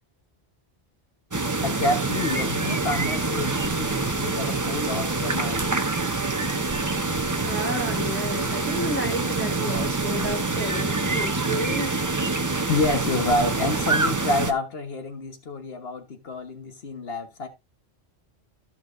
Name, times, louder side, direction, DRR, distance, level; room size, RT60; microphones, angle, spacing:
sound 1, 1.3-14.5, right 3 dB, 20° right, 0.6 m, -26 dB
voice 1, 1.6-5.7 12.5-17.5, left 2 dB, 65° left, 1.5 m, -28 dB
voice 2, 7.4-12.0, equal, 10° left, 1.4 m, -31 dB
13.5 x 5.8 x 2.6 m
omnidirectional pair, 1.1 m